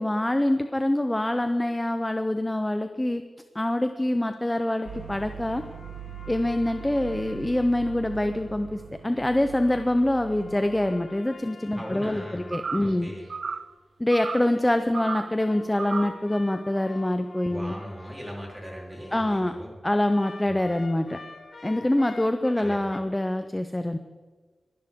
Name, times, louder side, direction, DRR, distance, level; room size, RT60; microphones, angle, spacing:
voice 1, 0.0-3.2 3.5-5.6 6.3-13.1 14.0-17.7 19.1-19.5 19.8-21.2 21.6-24.0, left 1 dB, 10° left, 8 dB, 0.5 m, -25 dB
sound 1, 4.8-8.8 9.4-13.8 14.3-19.5 20.1-23.0, left 3 dB, 45° left, 1.0 m, -47 dB
sound 2, 4.8-10.9, right 9 dB, 75° right, 0.9 m, -42 dB
voice 2, 11.8-12.5 12.8-13.2 17.5-19.8 20.4-20.7 22.6-22.8, equal, 10° right, -3 dB, 3.4 m, -39 dB
sound 3, 12.5-13.0 13.3-13.7 14.1-14.5 14.9-15.4 15.8-16.2, right 5 dB, 55° right, 0.3 m, -33 dB
23.0 x 11.5 x 3.6 m, 1.4 s
wide cardioid pair, 155°, 0 cm